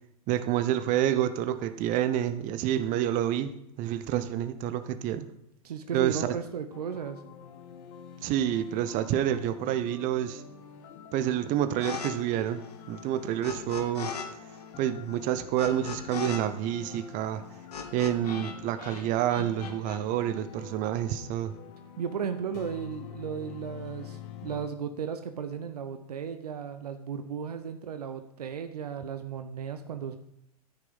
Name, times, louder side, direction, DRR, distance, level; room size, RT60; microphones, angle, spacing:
voice 1, 0.3-3.5 3.8-5.3 5.9-6.4 8.2-10.4 11.1-12.6 12.9-14.1 14.8-17.4 17.9-21.5, right 11 dB, 40° right, 12 dB, 0.8 m, -28 dB
voice 2, 5.6-7.2 22.0-30.2, right 7 dB, 85° right, 8 dB, 0.9 m, -35 dB
sound 1, 6.7-24.7, left 9 dB, 50° left, 1.4 m, -47 dB
sound 2, 11.8-12.1 12.4-14.3 14.5-18.5 18.8-20.0, left 6 dB, 85° left, 1.8 m, -38 dB
13.5 x 6.0 x 5.5 m, 0.75 s
hypercardioid pair, 105°, 20 cm